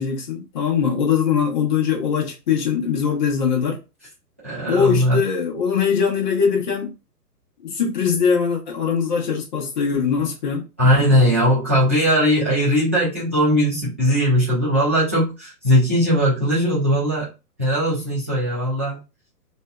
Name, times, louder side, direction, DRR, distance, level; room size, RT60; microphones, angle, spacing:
voice 1, 0.0-3.8 4.7-6.9 7.6-10.6, left 6 dB, 30° left, 0.7 m, -21 dB
voice 2, 4.4-5.2 10.8-17.3 17.6-19.0, equal, 10° right, 0.4 m, -19 dB
2.6 x 2.3 x 2.2 m
figure-of-eight pair, 125°, 48 cm